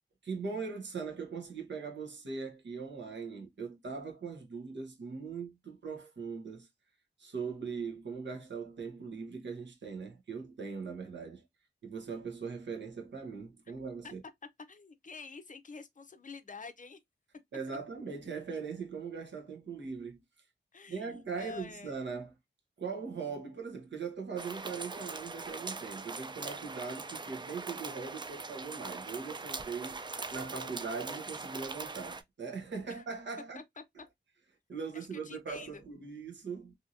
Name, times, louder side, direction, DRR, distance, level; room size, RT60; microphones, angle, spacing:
voice 1, 0.2-6.7 7.2-11.4 11.8-14.2 17.5-20.2 20.9-22.3 22.8-30.0 30.3-33.6 34.7-36.7, right 5 dB, 80° right, 0.9 m, -40 dB
voice 2, 14.7-17.0 20.7-22.0 26.7-27.1 32.9-33.1 33.5-33.8 34.9-35.8, left 4 dB, 45° left, 0.5 m, -48 dB
sound 1, 24.4-32.2, right 3 dB, 25° right, 0.3 m, -41 dB
2.7 x 2.5 x 2.6 m
wide cardioid pair, 90°, 18 cm